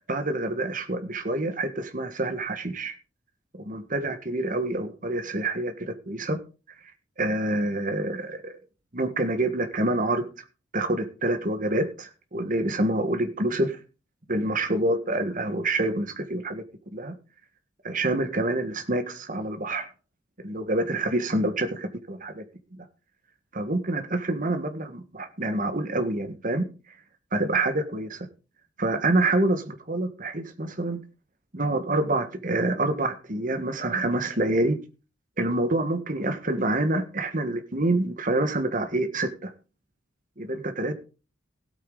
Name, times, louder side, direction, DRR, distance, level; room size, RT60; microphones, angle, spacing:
voice 1, 0.1-2.9 3.5-6.4 7.2-8.6 8.9-10.3 10.7-13.8 14.3-16.6 16.9-17.1 17.8-19.9 20.4-22.4 22.8-22.9 23.5-26.7 27.3-28.3 28.8-31.0 31.5-34.8 35.4-39.5 40.4-40.9, right 2 dB, 45° right, 1.6 m, -27 dB
16.5 x 8.7 x 4.0 m
head